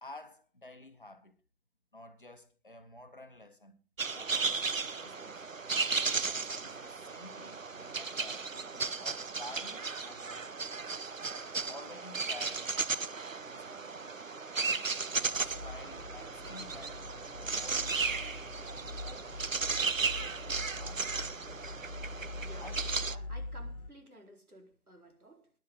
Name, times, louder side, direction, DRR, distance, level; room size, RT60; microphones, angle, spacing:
voice 1, 0.0-1.4 1.9-3.8 4.1-5.4 6.0-10.6 11.7-12.9 13.4-13.9 14.5-17.1 17.3-19.3 20.1-21.2 22.6-22.8, left 2 dB, 35° left, 1.2 m, -52 dB
sound 1, 4.0-23.2, right 4 dB, 60° right, 0.8 m, -35 dB
sound 2, 12.8-18.8, right 2 dB, 15° right, 3.8 m, -61 dB
sound 3, 15.3-23.9, left 2 dB, 75° left, 1.4 m, -44 dB
voice 2, 23.1-25.5, right 1 dB, 75° right, 4.5 m, -54 dB
19.0 x 10.5 x 3.8 m
figure-of-eight pair, 170°, 44 cm